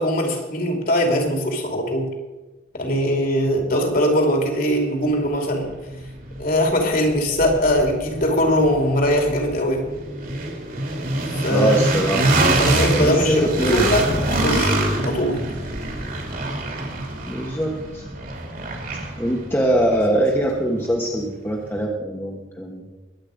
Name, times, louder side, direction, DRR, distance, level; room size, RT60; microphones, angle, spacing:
voice 1, 0.0-2.1 2.7-5.7 6.4-9.8 11.4-11.7 12.6-15.4, equal, 45° left, 3 dB, 2.8 m, -21 dB
sound 1, 4.7-4.8 5.3-21.2, right 2 dB, 45° right, 2.7 m, -25 dB
voice 2, 11.5-12.6 13.0-14.1 17.3-18.0 19.2-22.9, right 1 dB, 10° left, -1 dB, 1.3 m, -23 dB
22.0 x 8.7 x 5.1 m, 1.2 s
head